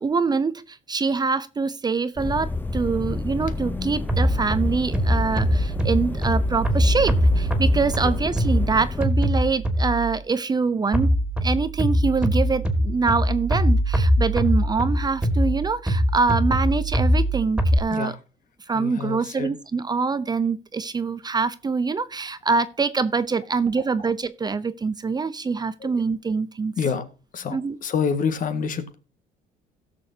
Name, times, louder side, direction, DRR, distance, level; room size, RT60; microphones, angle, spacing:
voice 1, 0.0-11.1 11.4-18.1 18.7-26.7 27.5-27.8, right 4 dB, 25° right, 0.7 m, -24 dB
sound 1, 2.2-9.1, left 3 dB, 10° left, 0.8 m, -31 dB
sound 2, 4.1-10.1 10.9-17.8, equal, 5° right, 2.4 m, -22 dB
voice 2, 18.7-19.6 23.7-23.9 25.8-26.0 26.8-27.1 27.3-28.9, left 6 dB, 50° left, 1.8 m, -28 dB
17.0 x 7.0 x 2.8 m
cardioid pair, 110°, 17 cm